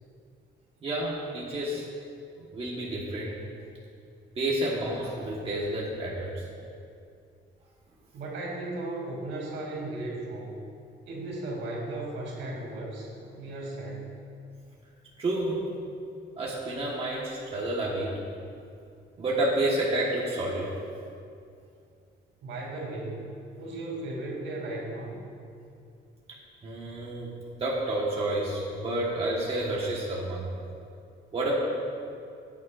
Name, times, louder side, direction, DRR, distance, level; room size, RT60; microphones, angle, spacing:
voice 1, 0.8-1.9 2.5-3.4 4.3-6.4 15.2-15.6 16.4-18.2 19.2-20.7 26.6-27.3 27.6-30.4 31.3-31.5, right 1 dB, 30° right, -5 dB, 1.4 m, -29 dB
voice 2, 8.1-10.5 11.1-14.0 22.4-23.3 23.6-25.2, right 2 dB, 75° right, -3 dB, 2.8 m, -36 dB
16.0 x 9.6 x 2.5 m, 2.4 s
cardioid pair, 160°, 19 cm